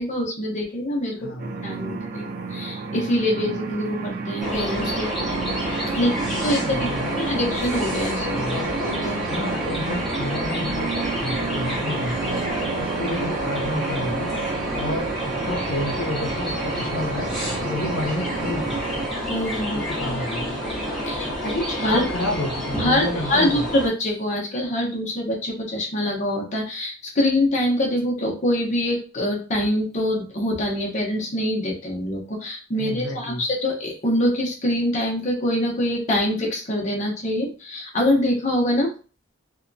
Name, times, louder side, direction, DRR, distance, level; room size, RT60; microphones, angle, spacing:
voice 1, 0.0-2.2 2.5-5.1 5.9-6.9 7.2-9.2 19.3-19.9 21.1-22.0 22.8-38.9, left 1 dB, 35° left, -1 dB, 0.7 m, -24 dB
voice 2, 1.2-1.5 5.9-6.3 6.6-7.2 8.3-8.7 9.3-18.7 19.7-20.4 21.9-23.7 32.8-33.4, left 1 dB, 85° left, 1 dB, 0.6 m, -31 dB
sound 1, 1.4-19.1, right 5 dB, 45° right, 0.3 m, -32 dB
sound 2, 4.4-23.9, equal, ahead, 0.8 m, -28 dB
2.8 x 2.2 x 2.6 m, 0.36 s
head